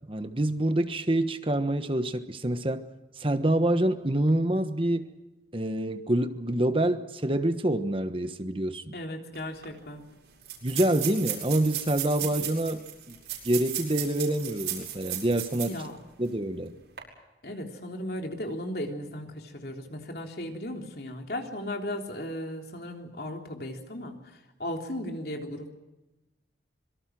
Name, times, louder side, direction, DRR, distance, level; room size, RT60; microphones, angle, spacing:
voice 1, 0.1-2.8 3.2-5.1 5.5-8.9 10.6-13.2 13.4-15.8 16.2-16.8, right 1 dB, 30° right, 1.3 m, -27 dB
voice 2, 8.9-10.0 15.7-16.0 17.4-25.7, left 1 dB, 60° left, 3.6 m, -36 dB
sound 1, 9.3-9.4 9.6-9.7 10.4-15.8 16.2-16.3 16.8-17.0, right 11 dB, 80° right, 7.7 m, -35 dB
26.0 x 23.5 x 6.2 m
head